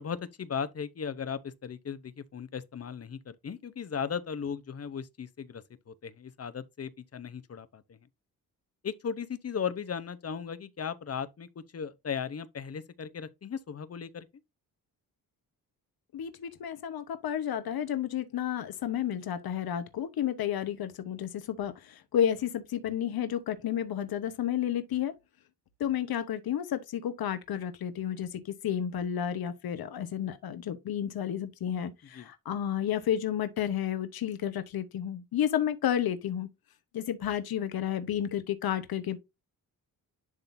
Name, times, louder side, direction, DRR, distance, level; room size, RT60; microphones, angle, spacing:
voice 1, 0.0-8.0 8.8-14.3 32.1-32.3, left 7 dB, 40° left, 0.9 m, -37 dB
voice 2, 16.1-25.1 25.8-36.5 36.9-39.2, left 10 dB, 80° left, 1.1 m, -31 dB
11.0 x 3.8 x 2.7 m
cardioid pair, 100°, 36 cm